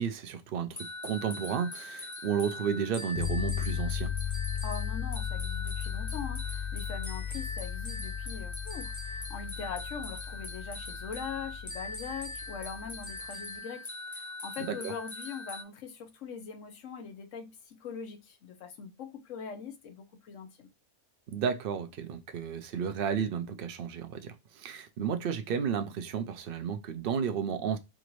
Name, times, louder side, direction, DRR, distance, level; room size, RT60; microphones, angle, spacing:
voice 1, 0.0-4.1 14.8-14.9 21.3-27.8, right 7 dB, 55° right, 0.7 m, -32 dB
sound 1, 0.8-15.6, left 2 dB, 25° left, 0.4 m, -42 dB
sound 2, 3.2-13.3, left 9 dB, 55° left, 0.7 m, -36 dB
voice 2, 4.6-20.7, left 6 dB, 85° left, 1.2 m, -42 dB
4.9 x 2.6 x 3.0 m
omnidirectional pair, 1.3 m